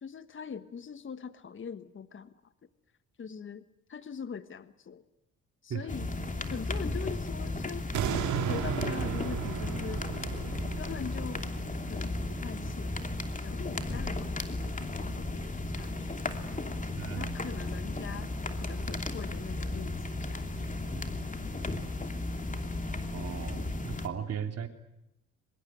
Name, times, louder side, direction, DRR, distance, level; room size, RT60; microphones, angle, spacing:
voice 1, 0.0-2.3 3.2-3.6 3.9-5.0 5.6-6.1 6.5-7.9 8.5-10.1 10.8-11.5 11.8-16.2 17.2-18.3 18.6-20.7, left 6 dB, 40° left, 12 dB, 1.5 m, -42 dB
sound 1, 5.9-24.1, left 2 dB, 25° left, 2.8 m, -35 dB
sound 2, 7.9-13.0 13.5-13.6, right 8 dB, 75° right, 2.4 m, -35 dB
voice 2, 17.0-17.3 23.1-24.7, right 8 dB, 55° right, 6 dB, 3.3 m, -37 dB
24.5 x 21.5 x 9.4 m, 0.85 s
cardioid pair, 90°, 30 cm